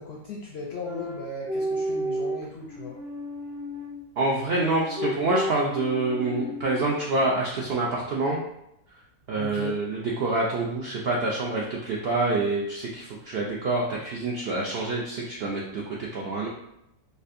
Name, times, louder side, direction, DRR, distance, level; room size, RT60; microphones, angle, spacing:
voice 1, 0.0-3.0 9.3-9.7, left 3 dB, 65° left, -2 dB, 0.6 m, -37 dB
sound 1, 0.8-4.0 4.7-7.0, equal, 40° right, 0.9 m, -32 dB
voice 2, 4.2-8.4 9.3-16.5, right 2 dB, 70° right, -4 dB, 0.5 m, -27 dB
4.2 x 2.5 x 2.5 m, 0.82 s
omnidirectional pair, 1.6 m